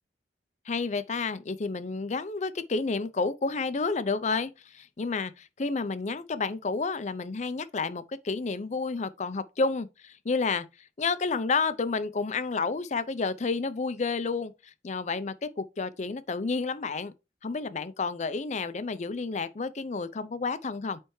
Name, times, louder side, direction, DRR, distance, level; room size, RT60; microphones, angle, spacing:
voice 1, 0.7-10.7 11.0-17.1 17.4-21.0, left 4 dB, 40° left, 0.5 m, -30 dB
8.8 x 3.4 x 3.1 m
head